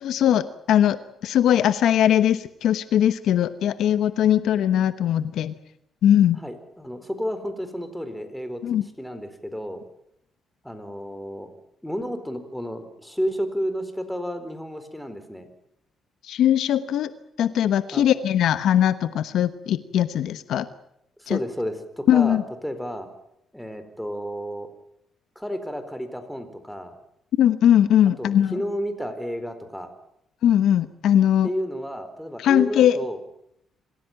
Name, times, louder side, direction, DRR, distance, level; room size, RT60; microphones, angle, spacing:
voice 1, 0.0-1.0 1.2-5.5 6.0-6.4 8.6-8.8 16.3-17.1 17.4-20.7 21.3-21.4 22.1-22.4 27.4-28.6 30.4-31.5 32.4-33.0, left 10 dB, 75° left, 13 dB, 1.1 m, -20 dB
voice 2, 6.4-8.6 9.0-9.8 10.6-11.5 11.8-15.5 17.9-18.0 21.2-23.1 23.5-24.7 25.4-27.0 28.2-29.9 31.4-33.2, equal, ahead, 9 dB, 4.2 m, -31 dB
26.5 x 15.5 x 9.0 m, 0.77 s
cardioid pair, 90°, 0 cm